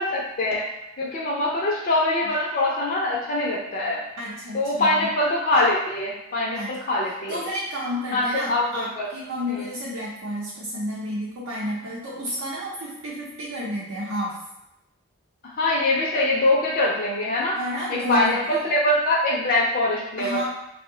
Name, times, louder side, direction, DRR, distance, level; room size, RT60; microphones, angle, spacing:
voice 1, 0.0-4.0 4.5-7.5 8.1-9.1 9.5-9.7 15.4-17.6 18.1-20.4, left 1 dB, 40° left, -5 dB, 0.4 m, -23 dB
voice 2, 4.2-5.1 6.5-6.7 7.3-14.4 17.6-18.4 20.2-20.4, left 1 dB, 80° right, -6 dB, 0.6 m, -31 dB
2.6 x 2.1 x 3.7 m, 0.85 s
head